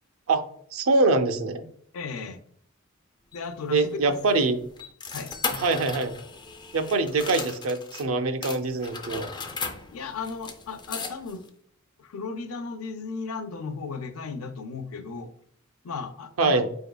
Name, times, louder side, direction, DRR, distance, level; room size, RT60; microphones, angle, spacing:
voice 1, 0.7-1.7 3.7-4.6 5.5-6.1 6.7-9.3 16.4-16.7, right 3 dB, 70° right, 8 dB, 0.5 m, -24 dB
voice 2, 1.9-2.4 3.3-4.5 5.1-5.3 9.9-11.4 12.0-15.3 15.8-16.7, left 4 dB, 80° left, 9 dB, 0.5 m, -35 dB
sound 1, 3.3-8.1 8.4-11.5, left 4 dB, 20° left, 0.3 m, -37 dB
4.6 x 3.5 x 2.2 m, 0.65 s
head